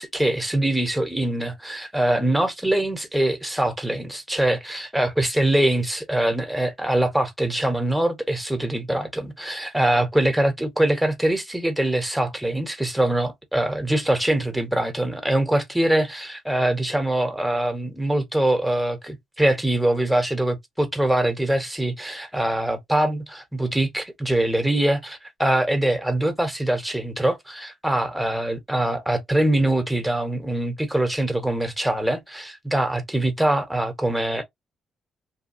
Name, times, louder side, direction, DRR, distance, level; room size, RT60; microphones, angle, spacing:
voice 1, 0.0-34.4, right 1 dB, 5° right, 1.0 m, -23 dB
2.8 x 2.3 x 2.7 m
cardioid pair, 90°, 0 cm